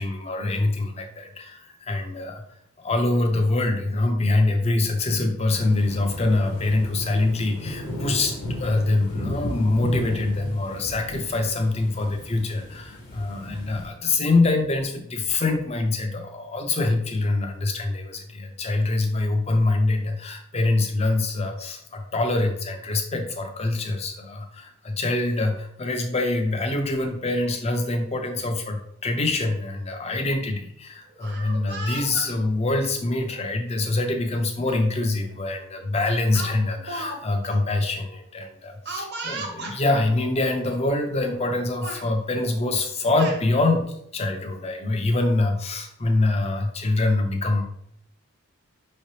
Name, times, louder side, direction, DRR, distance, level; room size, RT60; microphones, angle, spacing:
voice 1, 0.0-2.4 2.8-47.6, left 2 dB, 25° left, 4 dB, 0.5 m, -24 dB
sound 1, 5.5-13.9, left 1 dB, 80° left, 1.4 m, -34 dB
Speech, 31.1-32.3 33.2-33.4 34.7-34.8 35.2-35.4 36.3-37.2 37.4-37.6 38.8-39.8 40.7-40.8 41.2-41.5 41.8-42.1 42.8-43.4, right 2 dB, 45° right, 0.8 m, -35 dB
5.7 x 3.2 x 2.8 m, 0.73 s
head